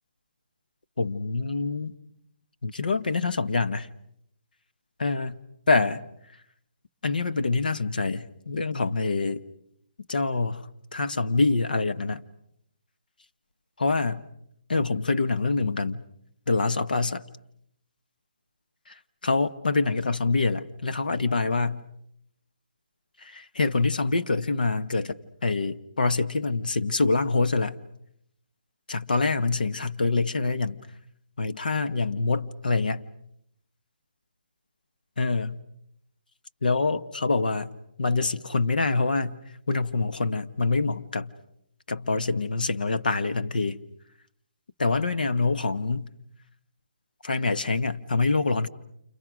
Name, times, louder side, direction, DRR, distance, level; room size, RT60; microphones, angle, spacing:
voice 1, 1.0-1.9 2.6-3.9 5.0-5.4 5.7-6.0 7.0-9.4 10.1-12.3 13.8-14.2 14.7-16.0 16.5-17.2 18.9-19.0 19.2-21.8 23.2-27.8 28.9-30.8 31.4-33.1 35.2-35.6 36.6-37.7 38.0-39.4 39.7-41.3 41.9-43.8 44.8-46.1 47.2-48.7, left 3 dB, 80° left, 10 dB, 1.3 m, -25 dB
29.0 x 28.5 x 6.3 m, 0.75 s
hypercardioid pair, 165°, 5 cm